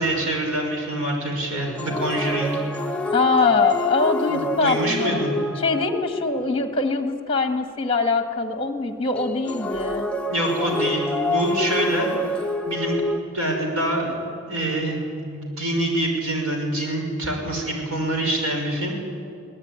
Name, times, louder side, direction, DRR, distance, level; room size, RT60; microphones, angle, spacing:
voice 1, 0.0-2.6 4.3-5.3 10.3-12.1 12.7-13.0 13.3-14.2 14.5-19.0, right 1 dB, 80° right, 1 dB, 5.6 m, -25 dB
sound 1, 1.5-6.6 9.1-13.2, left 2 dB, 5° left, 0.7 m, -27 dB
voice 2, 3.1-5.2 5.6-10.1, left 3 dB, 25° left, 6 dB, 1.5 m, -23 dB
23.0 x 18.0 x 9.6 m, 2.5 s
head